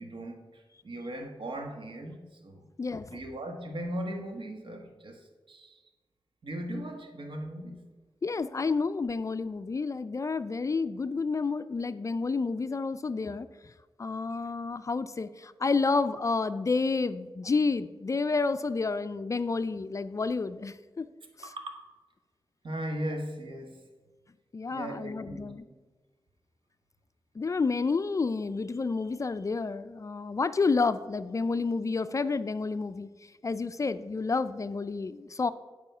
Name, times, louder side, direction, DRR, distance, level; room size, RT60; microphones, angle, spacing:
voice 1, 0.0-2.6 3.1-5.8 6.4-7.8 21.4-21.9 22.6-23.8 24.7-25.5, right 1 dB, 70° right, 1.2 m, -38 dB
voice 2, 2.8-3.2 8.2-13.5 14.0-21.1 24.5-25.6 27.4-33.1 33.4-35.5, left 4 dB, 35° left, 0.3 m, -30 dB
9.2 x 4.9 x 5.6 m
wide cardioid pair, 85°, 9 cm